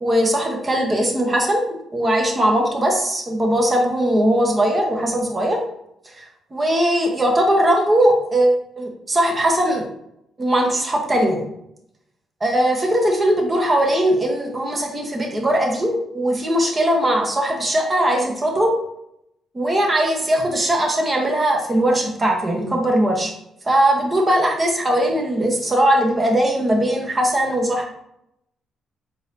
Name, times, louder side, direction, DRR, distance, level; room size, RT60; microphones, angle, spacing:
voice 1, 0.0-5.6 6.0-9.8 10.4-11.4 12.4-18.8 19.5-23.3 23.6-27.8, right 1 dB, 30° right, 1 dB, 1.0 m, -19 dB
4.1 x 3.9 x 2.6 m, 0.79 s
cardioid pair, 90°, 0 cm